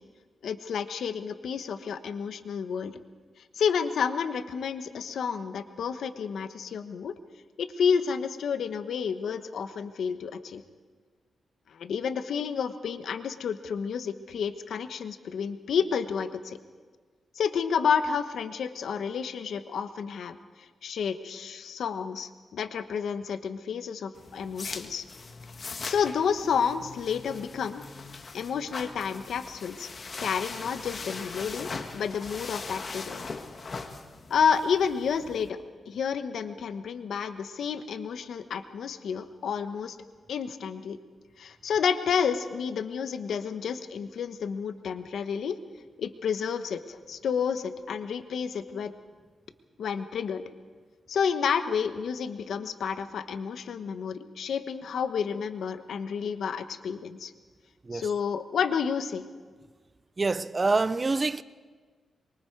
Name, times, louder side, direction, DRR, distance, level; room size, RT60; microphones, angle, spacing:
voice 1, 0.4-3.0 3.5-7.2 7.6-10.6 11.7-16.6 17.3-20.4 20.8-25.0 25.7-27.8 28.3-29.9 30.2-33.2 34.3-35.6 35.9-40.0 40.3-41.0 41.4-45.6 46.0-48.9 49.8-50.4 51.1-57.3 57.9-59.2, left 6 dB, 75° left, 1.2 m, -30 dB
sound 1, 24.1-35.5, left 4 dB, 45° left, 1.6 m, -40 dB
voice 2, 60.2-61.4, right 3 dB, 30° right, 0.6 m, -26 dB
24.5 x 23.0 x 4.7 m
cardioid pair, 85°, 0 cm